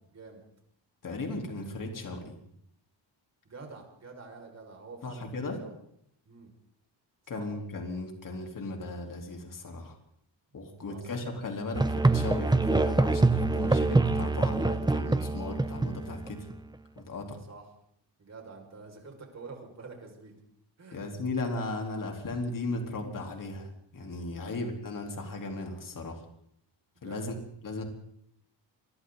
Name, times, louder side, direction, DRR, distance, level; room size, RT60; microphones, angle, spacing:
voice 1, 0.1-0.4 3.4-5.8 6.3-6.5 7.3-7.4 10.9-11.1 17.5-17.6 18.2-20.4 20.8-21.0 24.3-24.6 27.0-27.2, right 4 dB, 35° right, 1 dB, 5.9 m, -47 dB
voice 2, 1.0-2.4 5.0-5.6 7.3-10.0 10.5-16.5 17.0-17.4 20.9-26.2 27.0-27.4 27.6-27.8, left 2 dB, 45° left, 2 dB, 4.0 m, -36 dB
Musical instrument, 11.7-16.6, right 2 dB, 10° right, 0.9 m, -25 dB
28.0 x 24.0 x 4.1 m, 0.71 s
wide cardioid pair, 160°, 45 cm